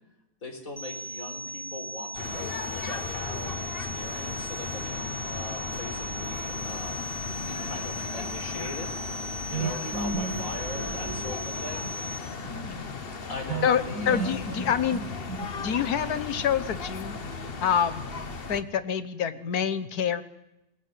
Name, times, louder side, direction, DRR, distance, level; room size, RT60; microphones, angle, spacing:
voice 1, 0.4-7.0 7.5-9.0 9.5-11.9 13.3-14.3, left 1 dB, 60° left, 4 dB, 4.8 m, -40 dB
sound 1, 0.8-12.2, equal, 15° left, 4.1 m, -38 dB
sound 2, 2.1-18.6, left 4 dB, 40° left, 1.4 m, -36 dB
sound 3, 9.5-12.1 13.5-15.9, right 4 dB, 80° right, 1.5 m, -34 dB
voice 2, 12.4-12.9 13.6-15.1 15.6-17.2 17.6-18.1 18.5-20.2, left 8 dB, 85° left, 13 dB, 1.6 m, -27 dB
22.0 x 18.5 x 9.2 m, 0.92 s
omnidirectional pair, 1.6 m